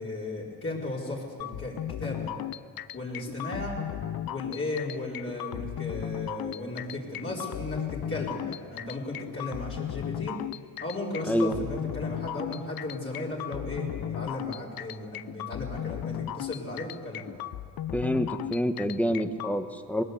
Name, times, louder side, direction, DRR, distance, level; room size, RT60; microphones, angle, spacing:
voice 1, 0.0-2.3 2.9-3.8 4.3-10.4 10.8-17.5, left 2 dB, 35° left, -5 dB, 4.5 m, -35 dB
sound 1, 1.4-19.5, left 12 dB, 75° left, 0.6 m, -36 dB
voice 2, 17.9-20.0, equal, 5° left, 7 dB, 1.3 m, -27 dB
20.5 x 20.5 x 8.1 m, 2.3 s
cardioid pair, 110°, 36 cm